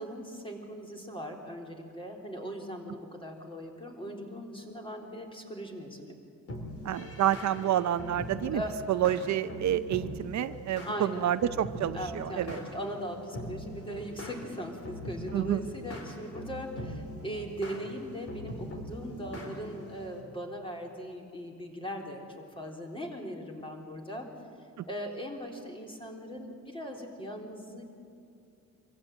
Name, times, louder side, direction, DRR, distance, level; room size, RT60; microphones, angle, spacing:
voice 1, 0.0-6.2 8.5-8.8 10.9-11.3 11.9-22.3 22.6-24.3 24.9-27.8, equal, 15° left, 1 dB, 3.8 m, -39 dB
sound 1, 6.5-20.2, left 1 dB, 50° left, 4.2 m, -42 dB
voice 2, 6.8-8.6 8.9-12.6 15.3-15.6, right 11 dB, 65° right, 12 dB, 0.7 m, -29 dB
24.5 x 15.0 x 9.1 m, 2.5 s
cardioid pair, 90°, 30 cm